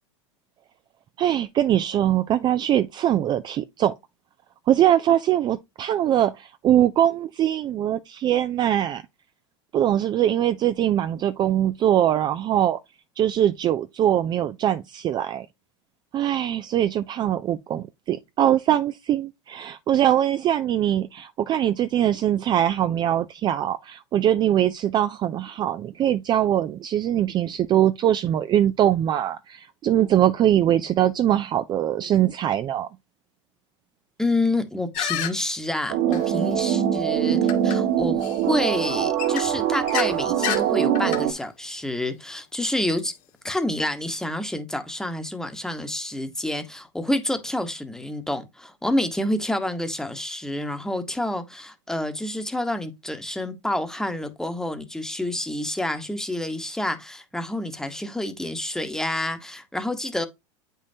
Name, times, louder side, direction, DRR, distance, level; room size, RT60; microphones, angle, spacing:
voice 1, 1.2-3.9 4.7-9.0 9.7-12.8 13.2-15.5 16.1-32.9, right 11 dB, 30° right, 0.4 m, -22 dB
voice 2, 34.2-43.1 43.4-60.3, left 1 dB, 5° left, 1.1 m, -28 dB
sound 1, 34.9-35.3 36.1-36.2 37.5-37.8 38.2-38.4 39.2-40.1 40.4-40.6 40.9-41.2, left 11 dB, 50° left, 1.6 m, -28 dB
sound 2, 35.9-41.3, right 10 dB, 65° right, 1.6 m, -23 dB
8.2 x 5.4 x 2.8 m
hypercardioid pair, 110°, 15 cm